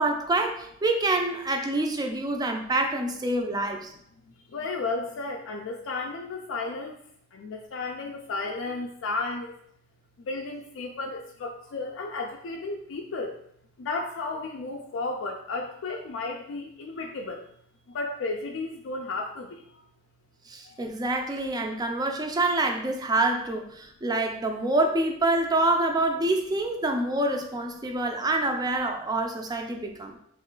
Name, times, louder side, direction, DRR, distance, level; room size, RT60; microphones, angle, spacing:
voice 1, 0.0-3.9 20.5-30.2, right 2 dB, 20° right, 4 dB, 0.4 m, -26 dB
voice 2, 4.5-7.0 7.3-9.5 10.3-13.3 13.8-17.4 17.9-19.5, left 3 dB, 70° left, 1 dB, 0.4 m, -33 dB
3.2 x 3.0 x 3.7 m, 0.71 s
head